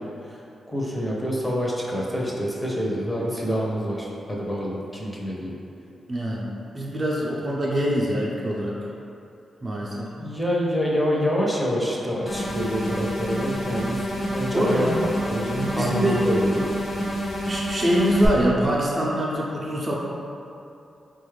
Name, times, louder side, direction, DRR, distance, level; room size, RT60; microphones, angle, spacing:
voice 1, 0.7-5.5 10.2-14.0 14.3-16.5, equal, 10° left, -4 dB, 0.7 m, -26 dB
voice 2, 6.1-6.5 6.7-8.8 9.6-10.1 14.5-14.9 15.5-16.2 17.5-19.9, equal, 35° right, -4 dB, 0.5 m, -24 dB
sound 1, 12.3-18.3, equal, 75° left, 0.6 m, -28 dB
3.9 x 2.3 x 3.2 m, 2.7 s
cardioid pair, 75°, 0 cm